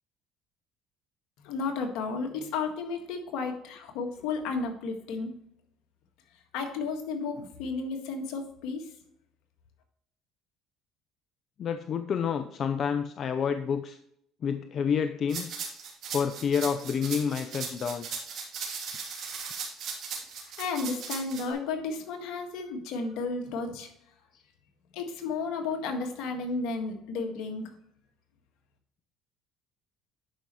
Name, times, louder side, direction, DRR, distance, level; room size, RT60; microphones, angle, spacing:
voice 1, 1.4-5.3 6.5-8.9 20.4-23.9 24.9-27.7, left 4 dB, 75° left, 4 dB, 1.7 m, -33 dB
voice 2, 11.6-14.0 14.4-15.6 16.1-18.1, left 7 dB, 50° left, 9 dB, 0.6 m, -29 dB
sound 1, 15.3-21.4, right 6 dB, 60° right, 3.1 m, -37 dB
11.5 x 5.3 x 3.1 m, 0.72 s
supercardioid pair, 80°, 0 cm